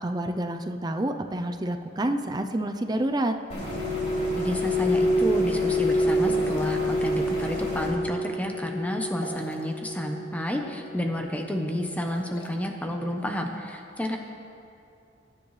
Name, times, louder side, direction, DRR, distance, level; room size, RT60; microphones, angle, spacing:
voice 1, 0.0-3.3, right 1 dB, 20° right, 6 dB, 0.5 m, -28 dB
sound 1, 3.5-7.9, left 1 dB, 40° left, 3.5 m, -34 dB
Glass, 3.7-8.2 8.5-9.2 9.6-10.1 10.7-11.0, left 1 dB, 80° right, 2.6 m, -27 dB
voice 2, 4.4-14.2, equal, 10° left, 2 dB, 0.8 m, -30 dB
sound 2, 6.2-6.9 9.1-9.7 11.9-12.5, left 1 dB, 85° left, 1.3 m, -40 dB
21.0 x 9.9 x 3.2 m, 2.5 s
head